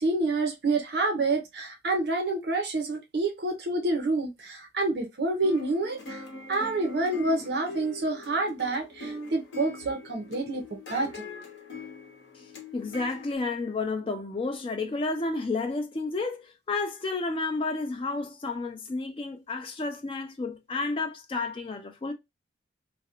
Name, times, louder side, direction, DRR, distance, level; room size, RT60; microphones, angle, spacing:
voice 1, 0.0-11.2, right 2 dB, 55° right, 0.6 m, -28 dB
sound 1, 5.4-13.4, left 2 dB, 80° left, 0.7 m, -42 dB
voice 2, 12.7-22.1, left 3 dB, 30° left, 0.3 m, -31 dB
2.4 x 2.0 x 2.8 m
head